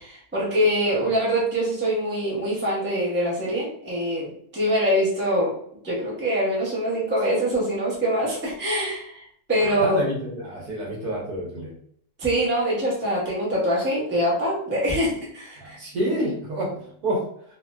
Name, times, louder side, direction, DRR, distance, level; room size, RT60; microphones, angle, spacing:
voice 1, 0.0-5.5 5.8-9.2 9.5-10.0 12.2-15.8, equal, 10° right, -7 dB, 0.6 m, -24 dB
voice 2, 9.6-11.7 15.6-17.2, right 1 dB, 60° right, -3 dB, 1.3 m, -28 dB
3.0 x 2.7 x 2.3 m, 0.66 s
omnidirectional pair, 2.0 m